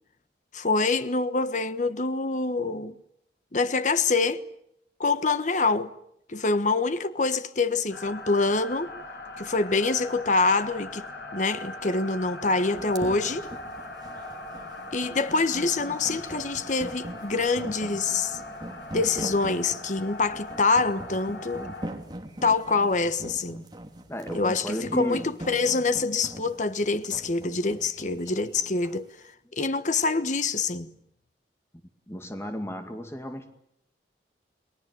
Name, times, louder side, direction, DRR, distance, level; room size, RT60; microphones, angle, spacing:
voice 1, 0.5-2.9 3.5-4.5 5.0-5.9 6.3-9.0 9.4-13.5 14.9-18.4 18.9-21.7 22.4-23.7 24.3-29.1 29.5-30.9, left 3 dB, 45° left, 1.2 m, -25 dB
sound 1, 7.9-21.9, left 2 dB, 80° left, 6.7 m, -40 dB
sound 2, 12.8-29.0, right 1 dB, 25° right, 3.0 m, -41 dB
voice 2, 24.1-25.2 32.1-33.5, equal, 15° left, 2.3 m, -34 dB
29.5 x 20.5 x 9.5 m
head